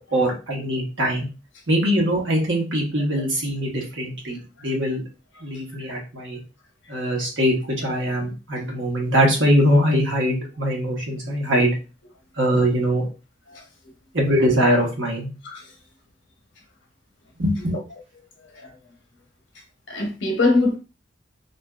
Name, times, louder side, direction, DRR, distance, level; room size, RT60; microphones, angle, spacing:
voice 1, 0.1-1.3 1.7-5.0 5.4-6.4 6.9-7.6 7.8-11.7 12.4-13.1 14.1-15.3 17.4-17.8, equal, 80° right, 1.1 m, -22 dB
voice 2, 19.9-20.8, left 2 dB, 75° left, 0.8 m, -23 dB
2.7 x 2.4 x 2.3 m
head